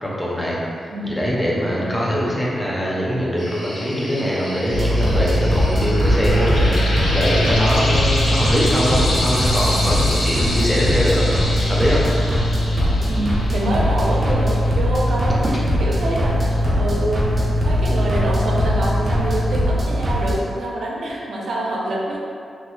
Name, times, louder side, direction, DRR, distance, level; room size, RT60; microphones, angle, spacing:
voice 1, 0.0-11.3 11.7-12.1, equal, 5° left, -5 dB, 0.5 m, -22 dB
sound 1, 3.4-12.0, equal, 50° left, 0.8 m, -36 dB
sound 2, 4.7-20.4, equal, 35° right, 0.7 m, -20 dB
sound 3, 5.5-14.7, left 1 dB, 80° left, 0.5 m, -28 dB
voice 2, 13.0-15.5 15.8-17.4 17.7-22.2, right 1 dB, 70° right, -3 dB, 0.5 m, -25 dB
3.1 x 2.1 x 3.0 m, 2.4 s
wide cardioid pair, 140°, 0 cm